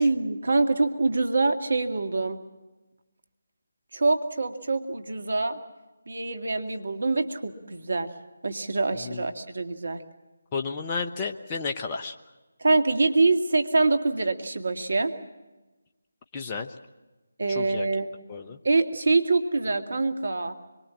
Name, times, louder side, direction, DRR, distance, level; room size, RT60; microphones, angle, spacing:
voice 1, 0.0-2.4 3.9-5.6 6.1-8.1 8.4-10.0 12.6-15.1 17.4-18.1 18.6-20.6, right 3 dB, 60° right, 7 dB, 2.2 m, -25 dB
voice 2, 10.5-12.2 16.3-16.7 17.5-17.9 18.3-18.6, left 4 dB, 20° left, 4 dB, 1.1 m, -32 dB
25.0 x 24.0 x 7.5 m, 1.1 s
figure-of-eight pair, 155°, 0 cm